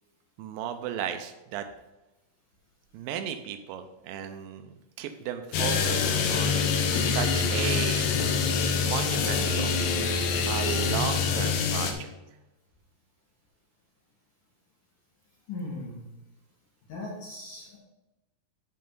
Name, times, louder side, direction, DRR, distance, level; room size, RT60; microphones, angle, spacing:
voice 1, 0.4-1.7 2.9-8.1 8.8-9.8 10.5-12.1, right 9 dB, 85° right, 7 dB, 2.0 m, -35 dB
sound 1, 5.5-11.9, left 5 dB, 90° left, 3.1 m, -25 dB
voice 2, 15.5-16.1 16.9-17.8, left 2 dB, 60° left, -5 dB, 3.1 m, -38 dB
8.7 x 5.4 x 5.4 m, 1.0 s
omnidirectional pair, 4.6 m